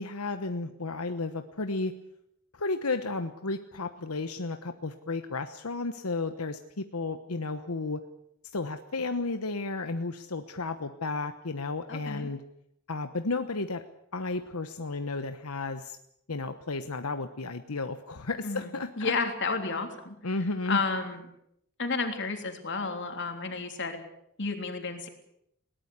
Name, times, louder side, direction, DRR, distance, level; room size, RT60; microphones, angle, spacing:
voice 1, 0.0-1.9 2.5-8.0 8.5-12.4 12.9-13.8 14.1-16.0 16.3-19.1 20.2-20.8, left 3 dB, 90° left, 8 dB, 1.1 m, -33 dB
voice 2, 11.9-12.3 18.4-20.3 20.7-21.2 21.8-24.0 24.4-25.1, left 4 dB, 55° left, 5 dB, 3.4 m, -31 dB
21.0 x 18.5 x 8.3 m, 0.76 s
head